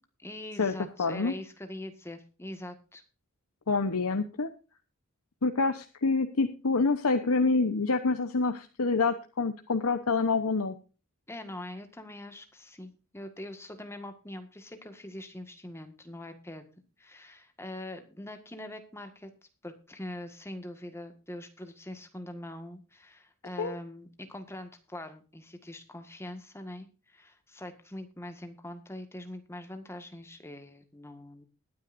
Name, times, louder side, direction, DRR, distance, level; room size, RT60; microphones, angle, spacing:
voice 1, 0.2-3.0 11.3-16.6 17.0-19.3 19.6-31.4, left 1 dB, 10° left, 7 dB, 1.6 m, -43 dB
voice 2, 1.0-1.3 3.7-4.5 5.4-10.7 23.6-23.7, left 4 dB, 80° left, 7 dB, 1.0 m, -27 dB
20.5 x 9.6 x 2.6 m, 0.34 s
head